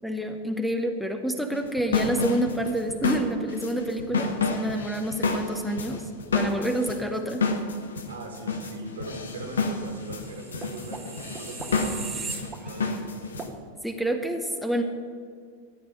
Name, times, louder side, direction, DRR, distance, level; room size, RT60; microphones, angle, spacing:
voice 1, 0.0-7.4 13.8-14.8, right 1 dB, ahead, 5 dB, 0.9 m, -28 dB
sound 1, 1.5-13.5, left 3 dB, 70° left, 1.3 m, -30 dB
voice 2, 8.1-13.1, right 1 dB, 65° right, 3 dB, 2.2 m, -40 dB
sound 2, 10.1-13.0 13.4-13.5, right 5 dB, 20° right, 1.3 m, -38 dB
13.5 x 8.7 x 6.0 m, 2.2 s
figure-of-eight pair, 90°, 0 cm